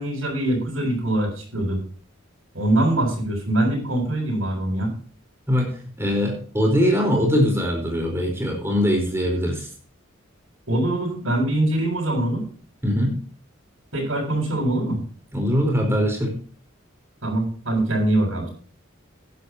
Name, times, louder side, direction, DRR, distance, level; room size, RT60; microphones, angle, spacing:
voice 1, 0.0-1.8 2.5-4.9 10.7-12.4 13.9-15.0 17.2-18.5, right 1 dB, 75° right, 0 dB, 7.2 m, -23 dB
voice 2, 6.0-9.7 12.8-13.1 15.3-16.3, equal, 10° right, 1 dB, 4.6 m, -21 dB
15.5 x 11.0 x 3.0 m, 0.43 s
head